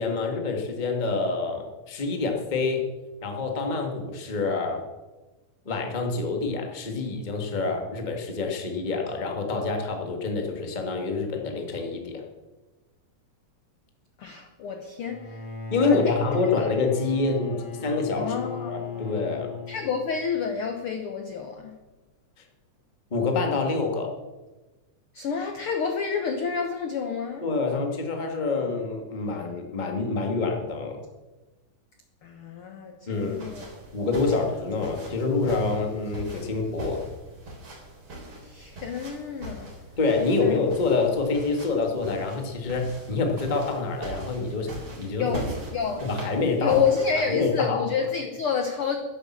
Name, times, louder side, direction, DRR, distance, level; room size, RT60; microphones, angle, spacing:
voice 1, 0.0-2.9 3.2-4.8 5.6-12.2 15.7-18.3 18.7-19.5 23.1-24.1 27.4-31.0 33.1-33.4 33.9-37.0 40.0-44.7 45.0-45.3 46.0-46.8 47.3-47.8, left 4 dB, 25° left, 2 dB, 1.1 m, -27 dB
voice 2, 14.2-15.4 15.8-16.2 18.2-19.2 19.7-21.8 25.1-27.4 32.2-33.7 38.4-39.7 40.4-40.6 45.2-46.1 46.6-49.0, left 6 dB, 70° left, 6 dB, 1.3 m, -29 dB
Bowed string instrument, 15.0-20.3, left 4 dB, 90° left, 3.8 m, -37 dB
sound 1, 33.1-47.3, right 1 dB, 40° right, 4.6 m, -41 dB
12.5 x 10.5 x 7.3 m, 1.2 s
omnidirectional pair, 3.8 m